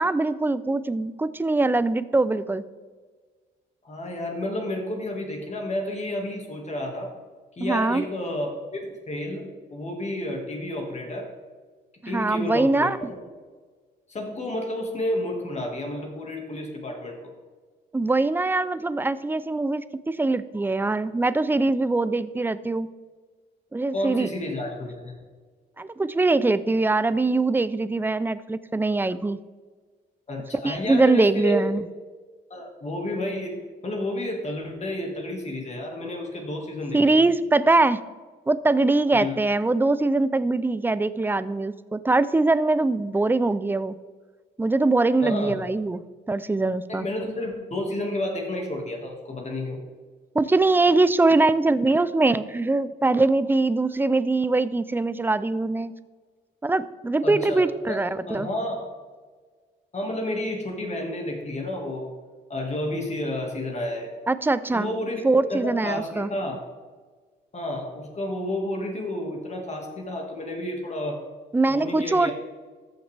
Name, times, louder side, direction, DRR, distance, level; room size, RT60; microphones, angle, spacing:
voice 1, 0.0-2.6 7.6-8.0 12.0-13.1 17.9-22.9 23.7-24.3 25.8-29.4 30.6-31.8 36.9-38.0 38.5-43.9 44.6-47.1 50.3-55.9 56.6-58.5 64.3-64.9 65.2-66.3 71.5-72.3, right 2 dB, 10° right, 15 dB, 0.4 m, -22 dB
voice 2, 3.8-7.1 7.6-11.3 12.1-13.2 14.1-17.3 23.9-25.2 30.3-31.7 32.5-33.6 33.8-37.1 39.1-39.3 45.2-45.6 46.9-49.8 57.2-58.9 59.9-62.1 62.5-64.1 64.7-65.2 65.5-66.6 67.5-71.2 71.7-72.3, left 1 dB, 35° left, 1 dB, 1.8 m, -31 dB
14.0 x 5.9 x 3.3 m, 1.5 s
cardioid pair, 90°, 20 cm